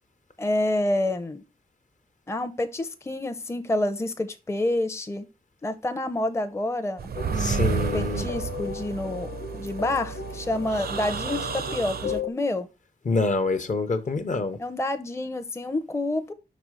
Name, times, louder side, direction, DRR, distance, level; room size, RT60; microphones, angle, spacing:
voice 1, 0.4-1.4 2.3-5.3 5.6-12.7 14.6-16.3, left 1 dB, 15° left, 0.6 m, -28 dB
sound 1, 7.0-12.2, right 7 dB, 70° right, 0.6 m, -31 dB
sound 2, 7.1-12.3, left 6 dB, 80° left, 0.8 m, -36 dB
voice 2, 7.4-8.3 13.0-14.6, left 3 dB, 50° left, 0.8 m, -26 dB
5.7 x 4.2 x 4.8 m
wide cardioid pair, 110°, 17 cm